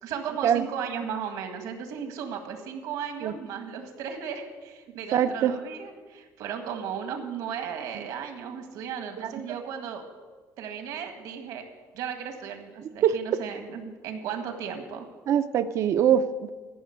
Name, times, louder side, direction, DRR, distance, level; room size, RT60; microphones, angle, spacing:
voice 1, 0.0-10.0 10.6-11.6 11.9-15.1, right 7 dB, 80° right, 5 dB, 1.8 m, -35 dB
voice 2, 5.1-5.5 7.9-8.0 9.2-9.3 13.0-13.4 15.3-16.5, right 9 dB, 55° right, 11 dB, 0.6 m, -23 dB
14.5 x 6.1 x 8.0 m, 1.4 s
cardioid pair, 145°, 6 cm